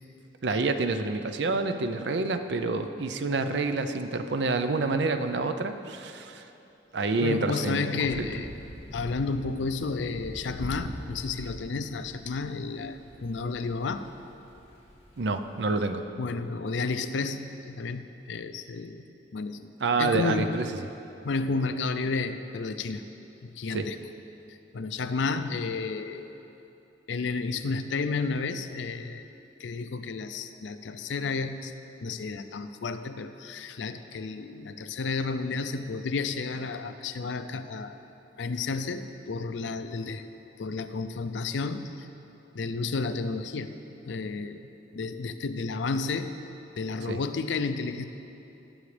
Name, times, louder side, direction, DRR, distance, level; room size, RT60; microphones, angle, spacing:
voice 1, 0.4-6.5 6.9-8.3 15.2-16.0 19.8-20.6 23.7-23.9 47.1-47.2, right 3 dB, 70° right, 9 dB, 0.5 m, -28 dB
voice 2, 7.2-8.5 8.9-14.1 16.2-19.0 19.3-19.7 20.0-20.6 21.2-23.0 23.4-24.0 24.7-26.3 27.1-29.3 29.6-31.7 32.0-38.0 38.4-40.3 40.6-42.1 42.5-43.7 44.0-44.6 44.9-46.3 46.8-48.0, left 4 dB, 80° left, 10 dB, 0.5 m, -31 dB
sound 1, 8.0-16.0, equal, 30° left, 2.5 m, -44 dB
18.0 x 6.2 x 3.3 m, 2.9 s
head